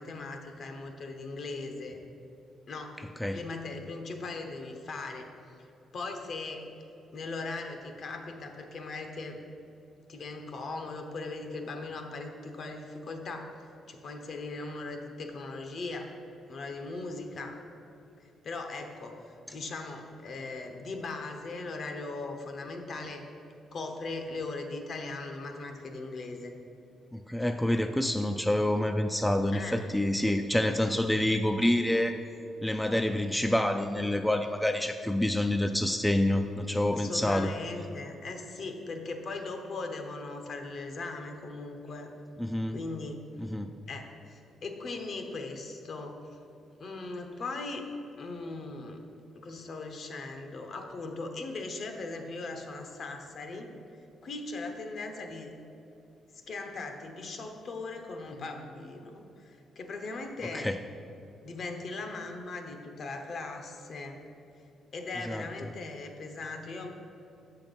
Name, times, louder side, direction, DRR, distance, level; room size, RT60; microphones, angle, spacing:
voice 1, 0.0-2.0 2.7-3.0 3.3-5.3 5.9-6.7 7.1-9.4 10.1-13.5 13.9-16.1 16.5-17.6 18.4-23.3 23.7-26.5 29.5-30.0 36.9-42.1 42.7-43.2 43.9-46.2 46.8-47.9 48.2-49.0 49.4-53.7 54.2-55.5 56.3-60.7 61.4-64.2 64.9-66.9, left 3 dB, 55° left, 5 dB, 0.9 m, -39 dB
voice 2, 27.1-32.2 32.6-37.5 42.4-42.8 43.4-43.7 60.5-60.8 65.2-65.5, left 1 dB, 5° left, 6 dB, 0.3 m, -27 dB
6.8 x 5.8 x 5.3 m, 2.8 s
cardioid pair, 90°, 0 cm